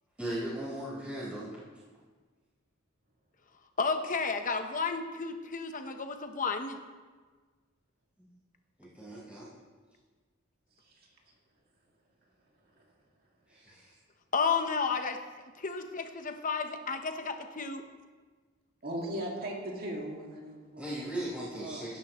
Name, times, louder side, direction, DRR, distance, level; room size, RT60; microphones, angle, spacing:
voice 1, 0.2-1.6 8.8-9.5 13.5-13.9 20.8-22.0, right 1 dB, 5° right, -10 dB, 4.4 m, -38 dB
voice 2, 3.8-6.8 14.3-15.2 15.6-17.8, left 5 dB, 40° left, 6 dB, 0.9 m, -32 dB
voice 3, 18.8-20.9 21.5-21.9, right 1 dB, 50° right, -1 dB, 2.3 m, -38 dB
17.0 x 10.5 x 3.1 m, 1.4 s
head